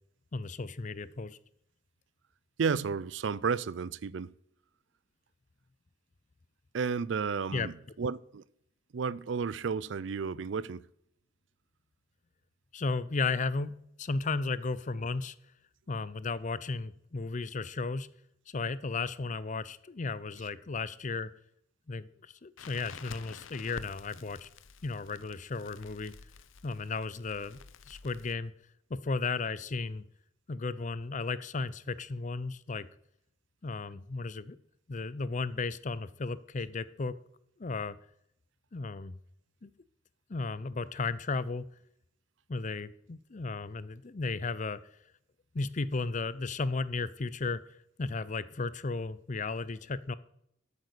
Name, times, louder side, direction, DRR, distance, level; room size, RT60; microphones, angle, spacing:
voice 1, 0.3-1.4 7.5-7.7 12.7-13.7 14.0-15.3 15.9-18.1 18.5-21.3 21.9-24.5 24.8-26.1 26.6-27.6 27.9-28.5 28.9-30.0 30.5-32.9 33.6-34.6 34.9-37.1 37.6-38.0 38.7-39.1 39.6-39.7 40.3-41.7 42.5-44.8 45.5-47.6 48.0-50.1, left 3 dB, 40° left, 0.6 m, -34 dB
voice 2, 2.6-4.3 6.7-8.4 8.9-10.8, right 5 dB, 70° right, 0.4 m, -32 dB
Crackle, 22.6-28.4, left 5 dB, 90° left, 0.7 m, -50 dB
12.5 x 8.4 x 6.6 m
head